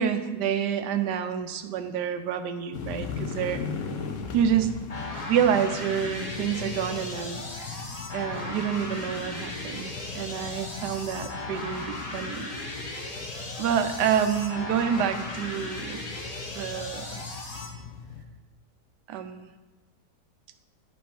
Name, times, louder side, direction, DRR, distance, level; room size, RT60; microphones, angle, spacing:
voice 1, 0.0-3.6 4.3-4.7 5.3-7.8 8.1-12.5 12.8-13.1 13.6-16.1 16.5-17.2 19.1-19.5, right 8 dB, 85° right, 9 dB, 1.2 m, -28 dB
sound 1, 2.7-18.3, left 5 dB, 55° left, 1.0 m, -39 dB
sound 2, 4.9-17.7, left 2 dB, 30° left, 0.9 m, -37 dB
9.3 x 5.4 x 4.4 m, 1.2 s
omnidirectional pair, 1.8 m